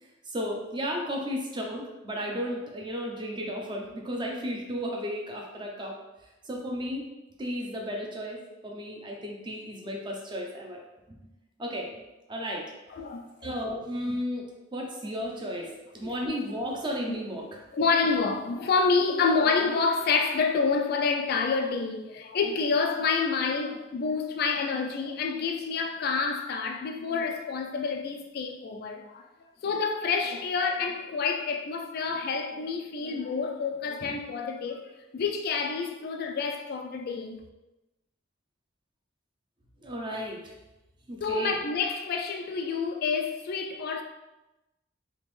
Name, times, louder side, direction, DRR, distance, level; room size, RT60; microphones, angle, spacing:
voice 1, 0.0-6.0 6.4-7.0 7.4-10.8 11.6-11.9 12.3-12.6 13.4-14.4 14.7-17.6 39.8-40.5 41.1-41.6, equal, 25° right, 0.6 m, -34 dB
voice 2, 12.9-13.5 16.0-16.1 17.7-29.2 29.6-37.4 41.2-44.0, left 4 dB, 50° left, 0.3 m, -28 dB
3.6 x 2.9 x 3.1 m
head